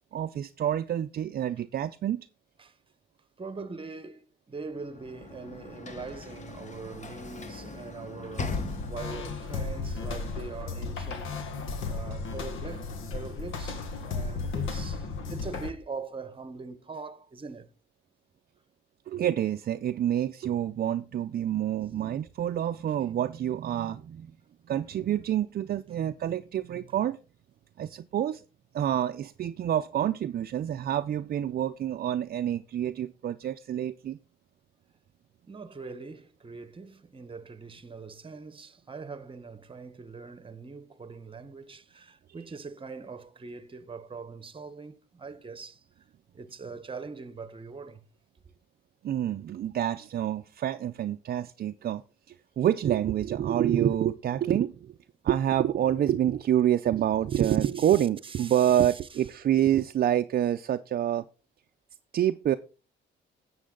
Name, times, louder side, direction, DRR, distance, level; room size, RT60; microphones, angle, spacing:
voice 1, 0.1-2.3 19.1-24.3 24.7-27.2 27.8-28.4 28.7-34.2 49.0-52.0 52.3-54.9 55.2-61.2 62.1-62.6, right 11 dB, 50° right, 0.5 m, -27 dB
voice 2, 3.4-8.6 8.8-11.4 11.9-17.7 21.8-22.2 35.5-45.8 46.3-48.0 57.3-59.0, right 4 dB, 25° right, 1.0 m, -42 dB
Sliding door / Slam, 4.7-9.4, left 3 dB, 35° left, 1.4 m, -40 dB
sound 1, 8.4-15.7, left 4 dB, 80° left, 1.5 m, -34 dB
11.5 x 7.8 x 3.8 m
cardioid pair, 90°, 20 cm